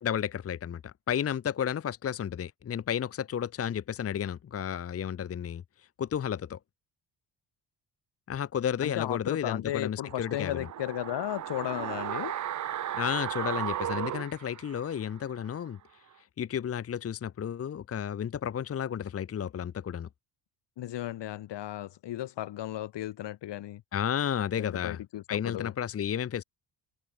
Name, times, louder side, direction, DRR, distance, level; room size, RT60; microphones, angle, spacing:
voice 1, 0.0-5.6 6.0-6.6 8.3-10.5 12.9-15.8 16.4-20.1 23.9-25.0 25.3-26.4, left 9 dB, 35° left, 0.9 m, -32 dB
voice 2, 8.8-12.4 20.8-23.8 24.6-25.7, left 13 dB, 75° left, 5.6 m, -35 dB
sound 1, 10.0-15.2 15.5-15.6, right 11 dB, 45° right, 0.8 m, -35 dB
cardioid pair, 130°, 42 cm